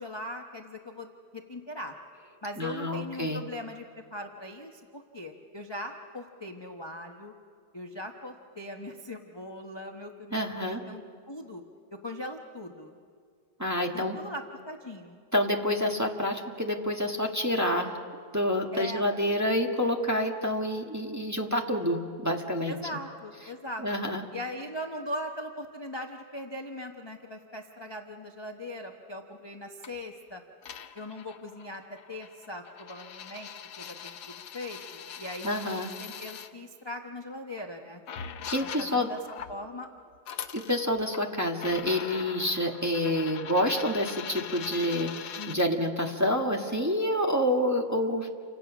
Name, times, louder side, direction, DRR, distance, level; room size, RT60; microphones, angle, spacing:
voice 1, 0.0-1.9 2.4-7.3 7.7-11.0 11.3-11.6 11.9-12.9 13.8-15.2 18.7-19.1 22.7-23.8 24.3-30.4 30.9-33.5 33.8-35.5 35.8-38.0 38.6-39.2 39.5-39.9 45.4-45.8, left 1 dB, 20° left, 2 dB, 1.0 m, -40 dB
voice 2, 2.6-3.4 10.3-10.8 13.6-14.2 15.3-17.9 18.3-22.7 23.8-24.2 35.4-35.9 38.5-39.1 40.5-48.3, left 1 dB, 10° right, 1 dB, 1.5 m, -28 dB
sound 1, 29.8-30.0 30.6-36.5 37.6-37.7 38.1-39.6 40.1-41.3 41.6-45.6, left 8 dB, 80° left, 1.5 m, -42 dB
29.0 x 25.5 x 6.2 m, 2.1 s
omnidirectional pair, 1.7 m